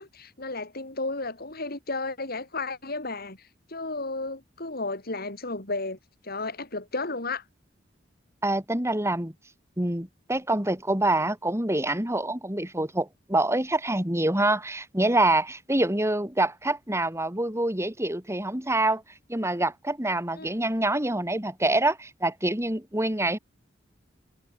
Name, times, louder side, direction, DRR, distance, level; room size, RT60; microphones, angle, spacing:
voice 1, 0.0-6.0 6.2-7.4 20.3-20.5, left 3 dB, 55° left, 6.6 m, -33 dB
voice 2, 8.4-9.3 9.8-19.0 19.3-23.4, right 2 dB, 15° right, 5.1 m, -26 dB
head